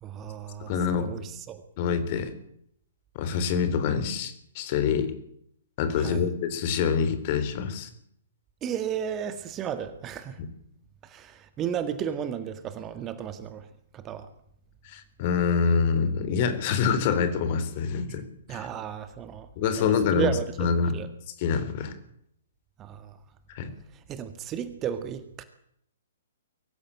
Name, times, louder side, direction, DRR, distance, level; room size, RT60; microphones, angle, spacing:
voice 1, 0.0-1.6 5.9-6.3 8.6-10.4 11.0-13.7 13.9-14.3 18.5-19.5 19.8-21.1 22.8-23.2 23.9-25.4, right 8 dB, 20° right, 10 dB, 1.8 m, -34 dB
voice 2, 0.6-1.1 1.8-2.3 3.2-5.1 5.8-7.9 10.4-10.5 14.8-18.2 18.5-18.7 19.6-20.3 20.6-21.0 21.4-21.9 23.5-23.7, left 6 dB, 40° left, 11 dB, 3.6 m, -26 dB
23.5 x 15.0 x 8.9 m, 0.71 s
figure-of-eight pair, 120°, 0 cm